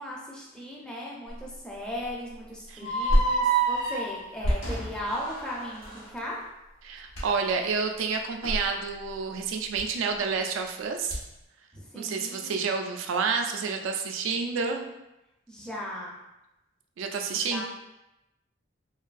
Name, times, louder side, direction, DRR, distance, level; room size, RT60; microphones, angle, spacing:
voice 1, 0.0-6.4 11.7-12.6 15.5-16.2 17.4-17.6, equal, 5° left, -5 dB, 0.4 m, -37 dB
sound 1, 1.3-11.5, equal, 90° left, 0.8 m, -34 dB
voice 2, 2.7-3.1 3.6-3.9 6.8-11.2 11.9-14.9 17.0-17.6, right 5 dB, 80° right, 4 dB, 0.3 m, -29 dB
sound 2, 2.8-6.0, right 4 dB, 65° left, 1.1 m, -29 dB
2.5 x 2.3 x 2.4 m, 0.93 s
head